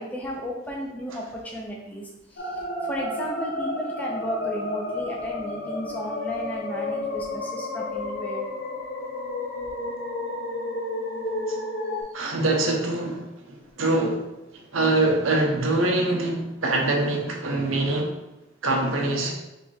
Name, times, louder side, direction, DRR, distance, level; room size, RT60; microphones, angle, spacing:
voice 1, 0.0-2.5 2.8-8.4, equal, 10° left, -2 dB, 0.6 m, -34 dB
sound 1, 2.4-12.0, left 2 dB, 50° left, 0.6 m, -31 dB
voice 2, 12.1-14.2 14.7-18.1 18.6-19.3, right 2 dB, 90° right, 1 dB, 0.8 m, -24 dB
3.4 x 3.0 x 4.4 m, 0.98 s
head